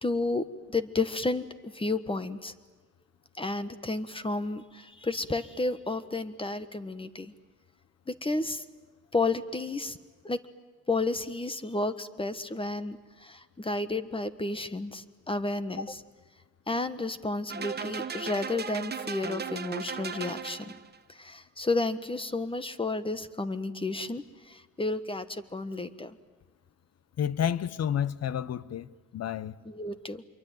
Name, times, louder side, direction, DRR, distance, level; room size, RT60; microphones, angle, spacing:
voice 1, 0.0-2.5 3.4-7.3 8.1-8.6 9.1-10.0 10.2-10.4 10.9-16.0 16.7-20.7 21.2-26.2 29.6-30.2, left 2 dB, 15° left, 1.4 m, -32 dB
sound 1, 17.5-21.0, right 6 dB, 35° right, 1.1 m, -36 dB
voice 2, 27.2-29.6, left 9 dB, 55° left, 0.9 m, -30 dB
26.5 x 23.0 x 9.2 m
cardioid pair, 90°, 30 cm